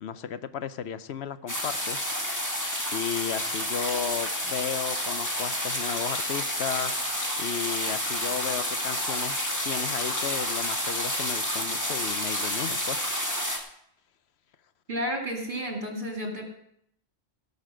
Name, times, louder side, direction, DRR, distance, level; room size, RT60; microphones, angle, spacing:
voice 1, 0.0-2.1 2.9-7.0 7.4-9.4 9.6-13.0, left 8 dB, 75° left, 13 dB, 0.9 m, -34 dB
sound 1, 1.5-13.6, equal, 15° left, 1.9 m, -30 dB
voice 2, 14.9-16.4, equal, 50° right, 1 dB, 2.8 m, -31 dB
16.5 x 6.7 x 6.2 m, 0.71 s
omnidirectional pair, 1.1 m